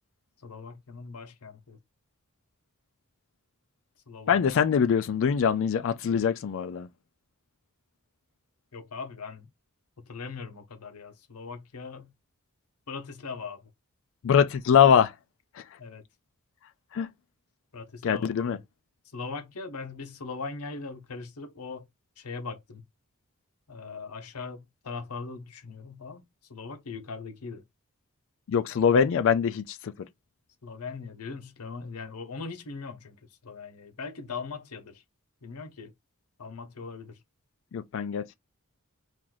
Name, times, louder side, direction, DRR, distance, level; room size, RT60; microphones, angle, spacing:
voice 1, 0.4-1.8 4.1-4.4 8.7-9.5 10.1-12.1 12.9-13.7 15.8-16.0 17.7-18.6 19.1-21.9 22.2-22.8 23.7-26.2 26.5-27.6 30.6-33.2 33.4-35.0 35.4-35.9 36.4-37.2, left 4 dB, 90° left, 0.8 m, -40 dB
voice 2, 4.3-6.9 14.2-15.1 16.9-17.1 18.0-18.6 28.5-29.9 37.7-38.4, left 7 dB, 60° left, 0.4 m, -23 dB
3.0 x 2.6 x 3.7 m
head